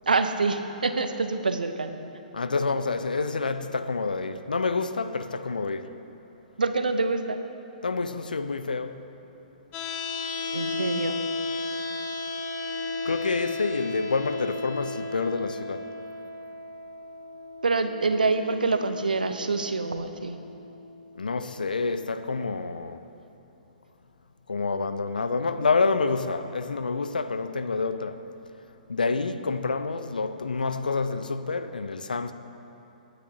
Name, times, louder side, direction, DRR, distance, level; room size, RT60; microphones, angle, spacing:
voice 1, 0.1-2.0 6.6-7.4 10.5-11.2 17.6-20.4, right 3 dB, 75° right, 0.8 m, -26 dB
voice 2, 2.3-5.9 7.8-9.1 13.0-15.9 21.2-23.0 24.5-28.3 28.9-32.3, left 4 dB, 75° left, 0.6 m, -28 dB
sound 1, 9.7-21.7, left 3 dB, 25° left, 1.0 m, -34 dB
24.5 x 9.7 x 2.8 m
figure-of-eight pair, 115°, 5 cm